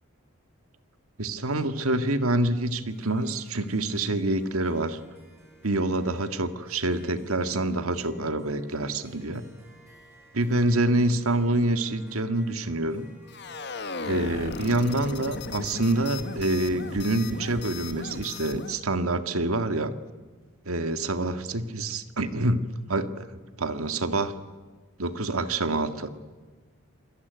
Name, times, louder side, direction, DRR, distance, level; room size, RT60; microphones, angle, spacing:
voice 1, 1.2-5.0 5.6-9.4 10.3-13.1 14.0-19.9 20.7-23.3 23.6-24.3 25.0-26.1, right 2 dB, 90° right, 10 dB, 1.8 m, -26 dB
Harp, 2.9-18.4, right 1 dB, 10° right, 8.0 m, -55 dB
sound 1, 13.3-18.8, left 3 dB, 55° left, 1.7 m, -37 dB
28.0 x 21.5 x 9.4 m, 1.4 s
head